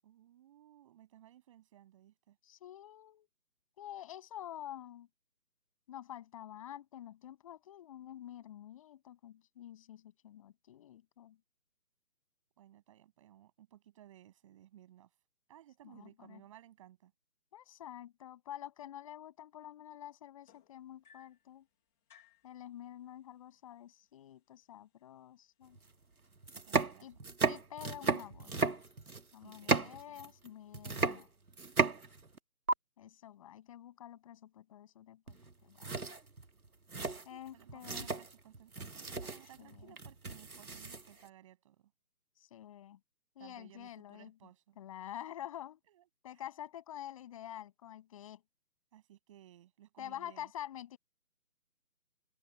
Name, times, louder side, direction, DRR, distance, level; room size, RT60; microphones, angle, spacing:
voice 1, 0.0-2.4 12.6-15.1 15.5-17.1 26.6-27.1 29.4-30.3 37.3-41.9 43.4-44.8 45.9-46.0 48.9-50.5, right 12 dB, 20° right, 7.6 m, -59 dB
voice 2, 2.4-3.3 3.8-5.1 5.9-11.4 15.8-16.4 17.5-21.7 22.4-25.8 27.0-27.2 27.5-28.6 29.3-31.3 33.0-35.4 35.6-35.9 37.2-38.1 39.6-39.9 42.4-43.0 43.4-44.3 44.8-45.8 46.2-48.4 50.0-51.0, left 11 dB, 20° left, 7.8 m, -48 dB
sound 1, 20.4-21.5 22.1-22.5 23.5-23.6 24.0-24.4 25.1-25.2, left 7 dB, ahead, 1.0 m, -62 dB
sound 2, 25.8-25.9 26.4-30.5 30.7-32.4 32.7-32.8 35.3-35.5 35.8-41.3, right 3 dB, 70° right, 2.5 m, -35 dB
figure-of-eight pair, 160°, 46 cm